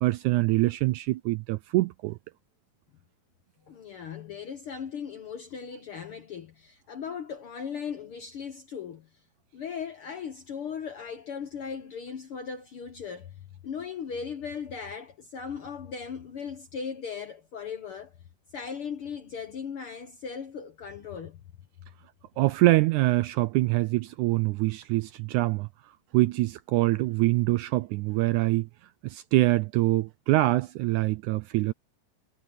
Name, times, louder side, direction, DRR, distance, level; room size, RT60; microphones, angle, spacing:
voice 1, 0.0-2.2 22.4-28.7 29.0-31.7, right 19 dB, 80° right, 1.8 m, -24 dB
voice 2, 3.7-9.1 9.5-18.2 18.5-21.4, left 6 dB, 60° left, 1.4 m, -38 dB
omnidirectional pair, 3.8 m